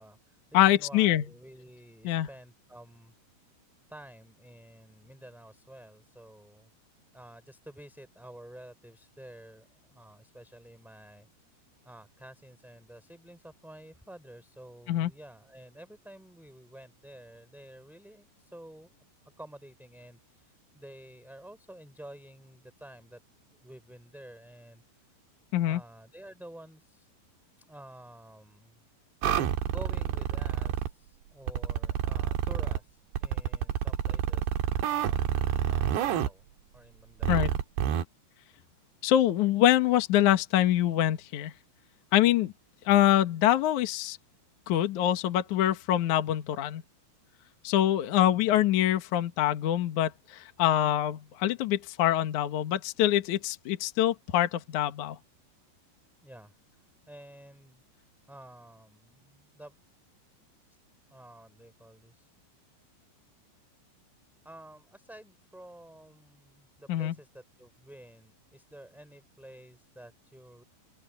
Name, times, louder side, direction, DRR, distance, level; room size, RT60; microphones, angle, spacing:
voice 1, 0.0-3.1 3.9-6.7 7.1-11.3 11.8-18.9 19.4-23.2 23.5-25.1 25.6-27.1 27.7-28.8 29.6-34.6 34.9-36.4 36.7-37.5 48.1-48.7 50.6-51.0 56.2-57.8 58.3-59.7 61.1-62.3 64.4-70.6, right 1 dB, ahead, 4.8 m, -50 dB
voice 2, 0.5-1.2 2.0-2.3 14.9-15.1 25.5-25.8 37.3-37.5 39.0-41.5 42.1-42.5 42.9-44.2 44.7-46.8 47.6-55.2 66.9-67.1, left 12 dB, 65° left, 2.0 m, -25 dB
sound 1, 29.2-30.9 31.5-32.8 33.2-36.3 37.2-38.0, right 10 dB, 70° right, 3.5 m, -28 dB
open air
omnidirectional pair, 5.2 m